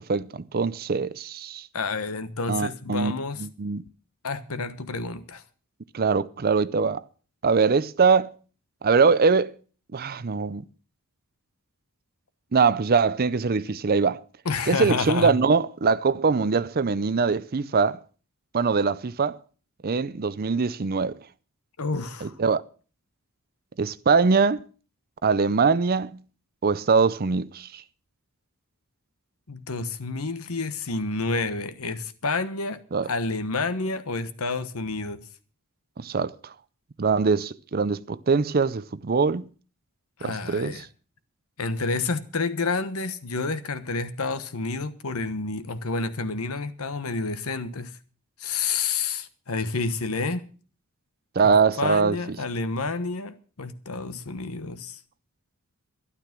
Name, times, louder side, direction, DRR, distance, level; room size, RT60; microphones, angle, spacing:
voice 1, 0.0-1.7 2.5-3.1 3.4-3.8 5.9-7.0 7.4-8.3 8.8-9.5 9.9-10.7 12.5-14.2 14.7-18.0 18.5-19.4 19.8-21.1 22.2-22.6 23.8-24.6 25.2-26.2 26.6-27.8 32.9-33.1 36.0-36.5 37.0-39.5 40.2-40.7 51.4-52.4, right 5 dB, 45° right, 0.5 m, -22 dB
voice 2, 1.7-3.5 4.2-5.4 14.4-15.3 21.8-22.3 29.5-35.2 40.2-40.9 41.6-48.0 48.4-50.5 51.4-55.0, left 3 dB, 80° left, 1.2 m, -29 dB
12.0 x 11.5 x 5.9 m
head